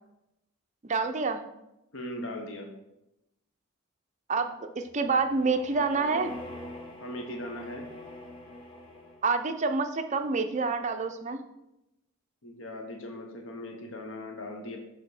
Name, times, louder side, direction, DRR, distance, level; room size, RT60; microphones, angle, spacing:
voice 1, 0.8-1.4 4.3-6.3 9.2-11.4, right 4 dB, 35° right, 6 dB, 0.5 m, -27 dB
voice 2, 1.9-2.7 7.0-7.9 12.4-14.8, left 1 dB, 65° left, 2 dB, 0.8 m, -39 dB
sound 1, 4.8-9.5, left 1 dB, 25° left, 0.9 m, -44 dB
7.0 x 3.5 x 4.8 m, 0.88 s
head